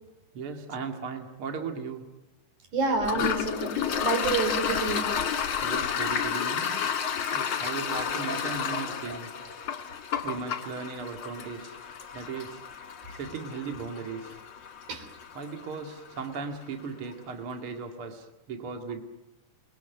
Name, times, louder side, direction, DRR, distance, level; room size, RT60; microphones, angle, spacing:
voice 1, 0.3-2.1 5.6-6.8 7.3-9.3 10.2-11.8 12.1-12.6 13.1-14.4 15.3-19.0, right 5 dB, 45° right, 4 dB, 2.8 m, -37 dB
voice 2, 2.7-5.1 6.0-6.1 14.9-15.1, right 3 dB, 65° right, 7 dB, 5.3 m, -29 dB
Toilet flush, 3.0-16.4, left 7 dB, 45° left, 2.3 m, -31 dB
29.5 x 22.0 x 9.2 m, 0.98 s
omnidirectional pair, 3.7 m